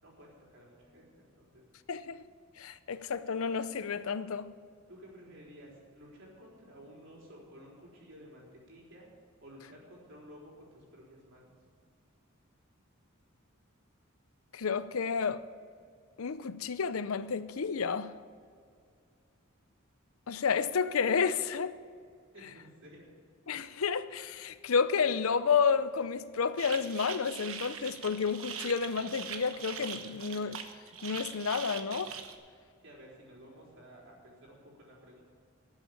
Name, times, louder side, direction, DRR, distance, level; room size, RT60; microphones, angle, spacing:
voice 1, 0.0-1.6 4.9-9.1 9.4-11.5 22.3-23.1 32.8-35.2, equal, 60° right, 4.1 m, -53 dB
voice 2, 1.9-2.3 2.6-4.5 14.5-15.4 16.2-18.1 20.3-21.8 23.5-30.6 31.0-32.2, left 5 dB, 80° left, 0.6 m, -31 dB
sound 1, 26.6-32.3, right 7 dB, 80° right, 1.1 m, -42 dB
12.5 x 7.4 x 8.6 m
head